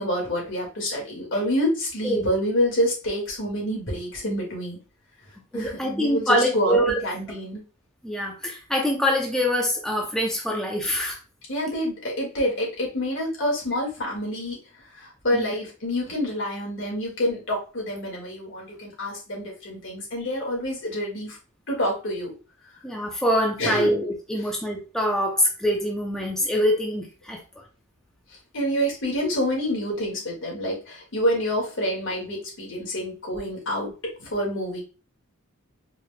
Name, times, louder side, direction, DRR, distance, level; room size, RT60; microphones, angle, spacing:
voice 1, 0.0-4.8 5.5-7.6 11.5-14.6 14.9-21.4 21.7-22.4 23.6-24.0 28.5-34.8, equal, 65° left, -2 dB, 1.9 m, -27 dB
voice 2, 5.5-7.0 8.0-11.2 15.3-15.5 22.8-27.4, equal, 5° left, -1 dB, 0.6 m, -24 dB
4.6 x 3.4 x 2.2 m, 0.34 s
head